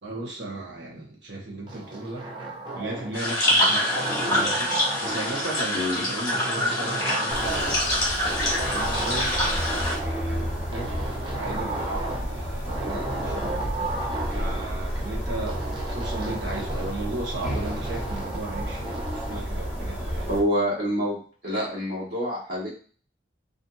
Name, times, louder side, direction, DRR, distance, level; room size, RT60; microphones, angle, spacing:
voice 1, 0.0-2.3 2.7-3.9 4.2-8.2 8.7-11.0 11.4-14.0 14.3-15.6 15.9-20.3, right 2 dB, 75° right, -1 dB, 0.8 m, -36 dB
sound 1, 1.7-3.2 3.6-5.7 6.3-7.9 8.2-10.2 10.7-12.3 12.7-14.7 15.5-17.0 17.4-19.5, right 2 dB, 25° right, 0.4 m, -33 dB
sound 2, 3.1-9.9, left 1 dB, 20° left, 1.1 m, -25 dB
voice 2, 5.7-6.1 20.3-21.2 21.4-22.7, equal, 55° right, -6 dB, 1.2 m, -26 dB
sound 3, 7.3-20.4, equal, 5° right, 0.9 m, -31 dB
2.7 x 2.5 x 2.3 m, 0.42 s
head